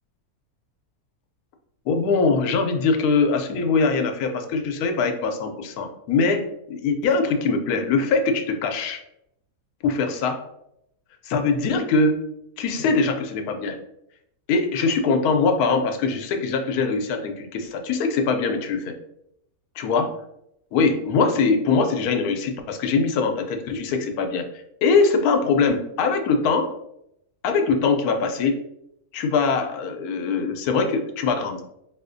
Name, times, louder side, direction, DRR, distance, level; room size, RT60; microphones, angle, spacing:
voice 1, 1.9-9.0 9.8-10.4 11.2-12.1 12.6-13.8 14.5-19.0 19.8-20.2 20.7-24.5 24.8-26.8 27.4-28.6 29.1-31.6, left 4 dB, 85° left, 5 dB, 1.1 m, -22 dB
4.1 x 2.4 x 2.5 m, 0.78 s
omnidirectional pair, 1.6 m